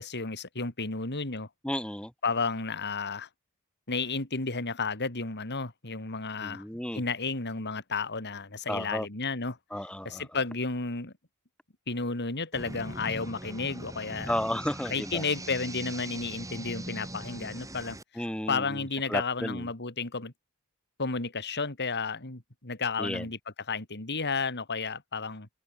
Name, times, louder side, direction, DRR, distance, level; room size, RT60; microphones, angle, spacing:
voice 1, 0.0-1.5 2.2-3.3 3.9-6.6 6.9-9.6 10.1-11.1 11.9-14.4 14.9-20.3 21.0-23.4 23.7-25.5, left 4 dB, 50° left, 3.5 m, -32 dB
voice 2, 1.6-2.1 6.4-7.0 8.7-9.1 9.7-10.3 14.2-15.2 18.2-19.7 23.0-23.3, left 1 dB, 5° left, 1.1 m, -33 dB
sound 1, 12.5-18.0, right 1 dB, 15° right, 6.4 m, -41 dB
open air
head